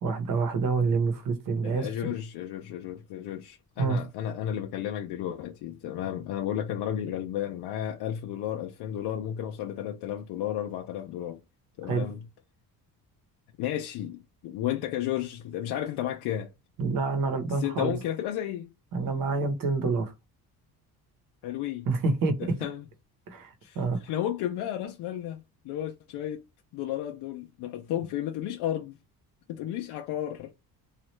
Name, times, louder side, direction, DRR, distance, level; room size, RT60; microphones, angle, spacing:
voice 1, 0.0-1.9 3.8-4.0 11.8-12.1 16.8-18.0 18.9-20.1 21.9-22.6 23.3-24.0, right 4 dB, 60° right, 0.9 m, -27 dB
voice 2, 1.6-11.4 11.8-12.2 13.6-16.5 17.5-18.7 21.4-21.9 22.4-22.9 23.6-26.4 26.7-28.9 29.5-30.5, left 11 dB, 90° left, 0.6 m, -33 dB
3.1 x 2.4 x 3.0 m
cardioid pair, 160°, 38 cm